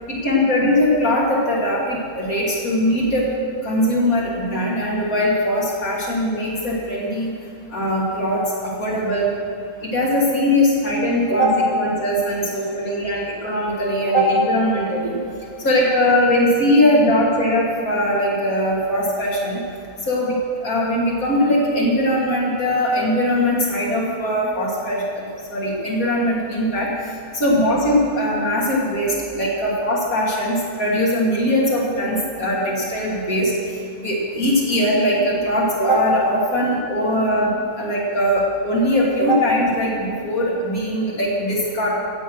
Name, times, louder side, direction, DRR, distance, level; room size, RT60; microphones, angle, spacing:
voice 1, 0.1-3.2 3.6-7.3 7.7-9.3 9.9-15.2 15.6-19.6 20.1-20.3 20.6-25.2 25.5-26.9 27.3-33.5 34.0-37.5 37.8-41.9, left 1 dB, 70° left, -5 dB, 3.0 m, -20 dB
16.0 x 8.3 x 6.3 m, 2.6 s
omnidirectional pair, 1.5 m